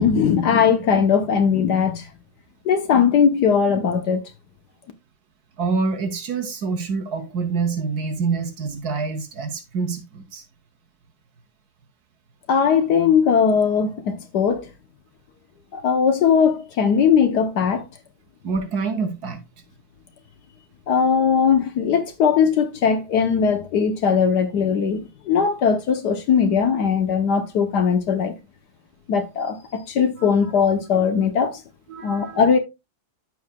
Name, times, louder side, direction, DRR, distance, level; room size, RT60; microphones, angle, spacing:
voice 1, 0.0-2.1 2.6-4.2 12.5-14.7 15.7-17.8 20.9-28.3 29.1-31.6 32.0-32.6, left 6 dB, 65° left, 1.3 m, -19 dB
voice 2, 5.6-10.4 18.4-19.4 30.2-30.3 31.9-32.4, right 4 dB, 60° right, 1.2 m, -26 dB
14.0 x 4.7 x 2.2 m
omnidirectional pair, 2.2 m